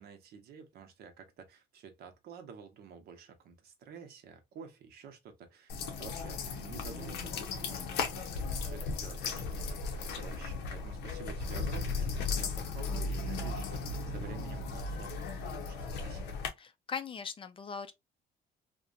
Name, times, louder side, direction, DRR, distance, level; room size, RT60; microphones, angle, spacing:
voice 1, 0.0-8.1 8.3-15.8 16.0-16.4, right 6 dB, 65° right, 0.8 m, -50 dB
sound 1, 5.7-16.5, left 4 dB, 90° left, 0.7 m, -36 dB
voice 2, 16.6-17.9, left 6 dB, 30° left, 0.4 m, -40 dB
2.7 x 2.1 x 2.5 m
cardioid pair, 110°, 17 cm